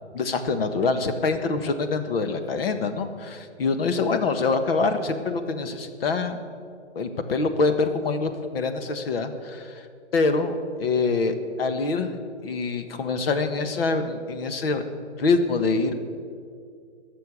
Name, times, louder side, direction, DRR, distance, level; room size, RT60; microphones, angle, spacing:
voice 1, 0.1-6.4 6.9-9.9 10.1-12.1 12.4-14.8 15.2-15.9, left 3 dB, 55° left, 8 dB, 1.4 m, -25 dB
20.0 x 6.9 x 6.5 m, 2.2 s
hypercardioid pair, 145°, 35 cm